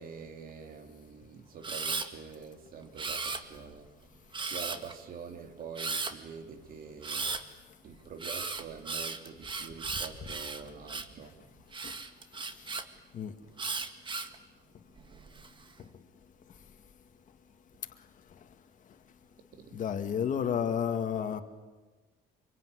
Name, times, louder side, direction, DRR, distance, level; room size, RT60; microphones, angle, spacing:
voice 1, 0.0-3.9 4.5-7.6 7.8-11.4 19.5-19.8, right 6 dB, 60° right, 2.8 m, -46 dB
Camera, 1.6-2.1 3.0-3.7 4.3-4.9 5.8-6.1 7.0-7.4 8.2-11.2 11.7-12.8 13.6-14.4 15.0-15.5, right 4 dB, 30° right, 2.1 m, -36 dB
voice 2, 19.7-21.4, left 8 dB, 50° left, 2.1 m, -31 dB
25.0 x 24.0 x 9.8 m
cardioid pair, 110°, 17 cm